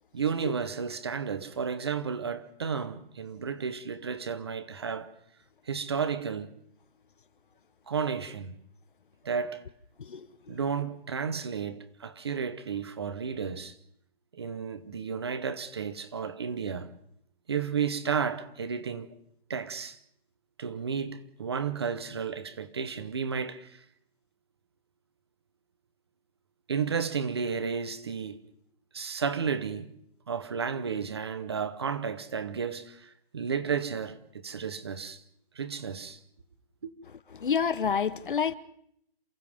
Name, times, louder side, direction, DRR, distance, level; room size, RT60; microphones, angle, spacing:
voice 1, 0.1-5.1 5.7-6.5 7.9-8.6 9.2-9.6 10.5-13.7 14.3-16.9 17.5-19.1 19.5-20.0 20.6-23.8 26.7-28.4 28.9-29.9 30.3-35.2 35.5-36.2, right 6 dB, 25° right, 1.0 m, -32 dB
voice 2, 10.0-10.6 37.1-38.5, left 7 dB, 55° left, 1.1 m, -29 dB
29.0 x 28.5 x 3.6 m
hypercardioid pair, 180°, 31 cm